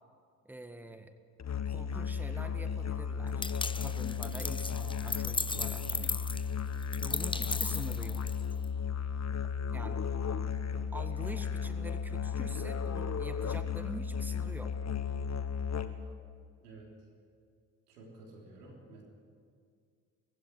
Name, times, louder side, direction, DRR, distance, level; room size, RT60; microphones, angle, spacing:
voice 1, 0.5-1.2 1.7-3.5 3.8-6.2 7.0-8.2 9.7-10.0 10.9-14.8, right 1 dB, 5° right, 8 dB, 1.7 m, -45 dB
Musical instrument, 1.4-16.1, left 6 dB, 35° left, 1.5 m, -35 dB
sound 1, 3.4-8.6, left 3 dB, 10° left, 0.6 m, -37 dB
voice 2, 16.6-16.9 17.9-19.0, right 2 dB, 90° right, -2 dB, 3.8 m, -52 dB
19.0 x 16.0 x 9.8 m, 2.1 s
hypercardioid pair, 45°, 45 cm